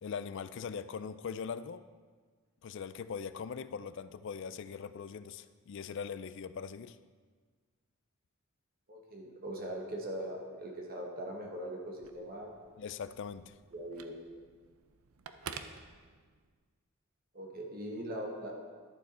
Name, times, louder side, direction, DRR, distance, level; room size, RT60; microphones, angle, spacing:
voice 1, 0.0-1.9 2.6-7.0 12.8-13.6, left 6 dB, 60° left, 13 dB, 0.4 m, -41 dB
voice 2, 8.9-12.5 13.7-14.2 17.3-18.6, right 1 dB, 45° right, 0 dB, 1.3 m, -41 dB
Telephone, 11.9-16.6, right 6 dB, 85° right, 0.5 m, -50 dB
11.0 x 7.0 x 4.2 m, 1.5 s
head